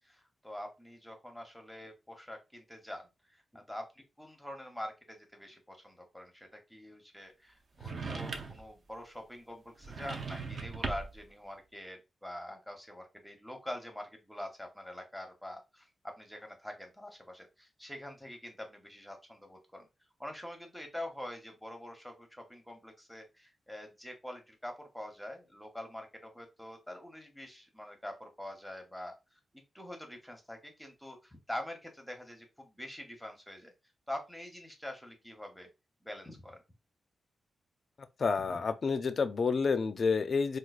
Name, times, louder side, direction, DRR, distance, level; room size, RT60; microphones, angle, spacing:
voice 1, 0.0-3.0 3.3-19.9 20.2-29.4 29.7-33.7 34.1-35.7 36.0-36.6 38.4-38.6, left 1 dB, 5° left, 0.8 m, -45 dB
sound 1, 7.8-8.7 9.8-11.2, right 4 dB, 45° right, 0.6 m, -39 dB
voice 2, 38.2-40.6, left 5 dB, 45° left, 0.4 m, -29 dB
4.5 x 2.3 x 2.4 m
wide cardioid pair, 140°, 0 cm